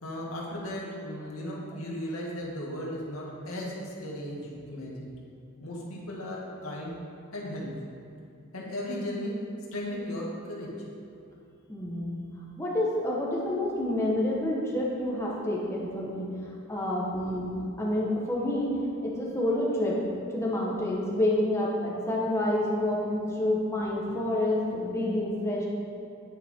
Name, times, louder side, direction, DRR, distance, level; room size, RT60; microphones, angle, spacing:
voice 1, 0.0-5.1 5.6-6.9 7.3-7.8 8.5-10.8, left 1 dB, 85° left, -4 dB, 2.2 m, -36 dB
voice 2, 11.7-12.2 12.6-16.3 16.7-17.5 17.8-20.0 20.3-25.7, left 1 dB, 15° left, -5 dB, 1.5 m, -28 dB
9.9 x 9.5 x 3.8 m, 2.6 s
head